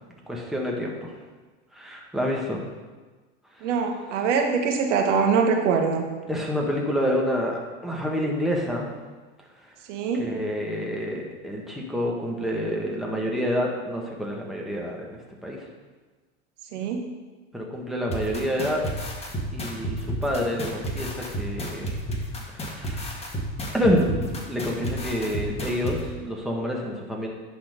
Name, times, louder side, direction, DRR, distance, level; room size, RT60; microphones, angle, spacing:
voice 1, 0.3-1.1 1.7-2.6 6.3-8.9 10.1-15.6 17.5-18.8 19.5-21.9 22.5-23.2 23.7-27.3, equal, ahead, -2 dB, 1.6 m, -28 dB
voice 2, 3.6-6.0 9.9-10.2 16.7-17.0, right 5 dB, 75° right, 3 dB, 1.4 m, -23 dB
sound 1, 18.1-26.0, right 1 dB, 15° left, 1.6 m, -31 dB
10.5 x 4.2 x 5.1 m, 1.3 s
hypercardioid pair, 105°, 36 cm